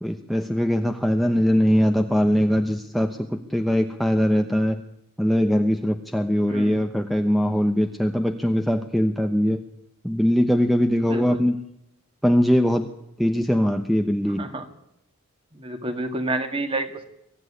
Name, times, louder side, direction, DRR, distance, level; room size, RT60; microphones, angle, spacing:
voice 1, 0.0-4.8 5.2-9.6 10.0-11.6 12.2-12.9 13.2-14.5, equal, ahead, 6 dB, 0.9 m, -21 dB
voice 2, 6.5-6.8 11.1-11.4 14.4-14.7 15.5-17.1, right 2 dB, 25° right, 7 dB, 2.0 m, -29 dB
24.0 x 15.0 x 9.8 m, 0.80 s
head